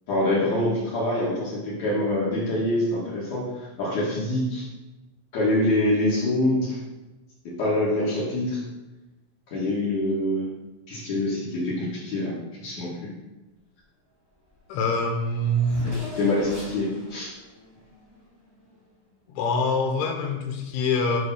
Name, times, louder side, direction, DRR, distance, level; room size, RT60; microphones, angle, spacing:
voice 1, 0.1-4.7 5.3-6.8 7.4-8.6 9.5-10.4 10.9-12.3 12.6-13.1 16.2-17.3, left 1 dB, 55° left, -7 dB, 2.5 m, -25 dB
Race car auto racing / Accelerating revving vroom, 14.5-14.6 14.8-18.8, left 1 dB, 10° right, 0.9 m, -42 dB
voice 2, 14.7-15.9 19.3-21.2, left 2 dB, 80° left, 2 dB, 2.8 m, -25 dB
9.5 x 3.3 x 5.5 m, 1.1 s
omnidirectional pair, 4.8 m